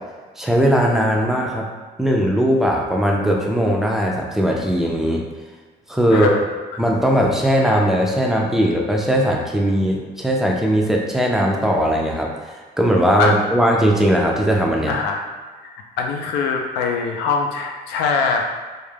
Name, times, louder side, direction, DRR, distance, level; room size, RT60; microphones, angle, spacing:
voice 1, 0.4-1.7 2.0-5.2 5.9-6.4 6.8-15.0, equal, ahead, -1 dB, 0.4 m, -19 dB
voice 2, 6.1-6.5 13.2-13.4 14.9-15.2 15.6-18.4, left 5 dB, 85° left, 2 dB, 0.4 m, -22 dB
2.3 x 2.0 x 3.2 m, 1.4 s
cardioid pair, 110°, 17 cm